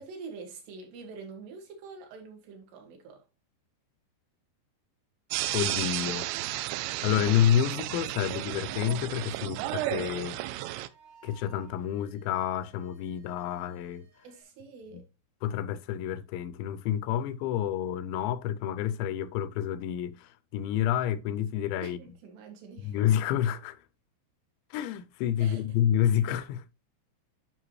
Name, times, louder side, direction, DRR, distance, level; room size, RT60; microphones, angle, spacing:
voice 1, 0.0-3.3 14.2-15.1 21.8-23.0 25.4-25.6, right 4 dB, 70° right, 3.8 m, -45 dB
sound 1, 5.3-10.9, right 16 dB, 90° right, 2.9 m, -33 dB
voice 2, 5.5-6.3 7.0-10.4 11.2-14.1 14.9-15.0 15.4-22.0 22.8-23.8 24.7-26.6, left 10 dB, 85° left, 2.8 m, -29 dB
sound 2, 7.8-14.4, right 6 dB, 40° right, 1.9 m, -62 dB
9.9 x 5.7 x 3.1 m
omnidirectional pair, 5.1 m